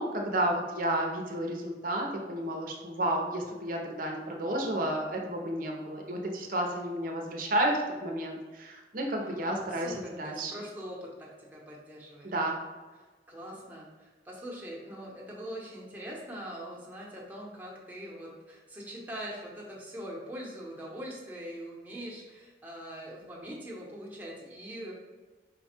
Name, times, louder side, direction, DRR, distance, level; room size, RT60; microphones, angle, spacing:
voice 1, 0.0-10.5 12.2-12.6, right 1 dB, 50° right, 1 dB, 0.7 m, -31 dB
voice 2, 9.2-12.3 13.3-24.9, equal, 10° right, -4 dB, 0.9 m, -42 dB
5.1 x 2.3 x 4.3 m, 1.3 s
head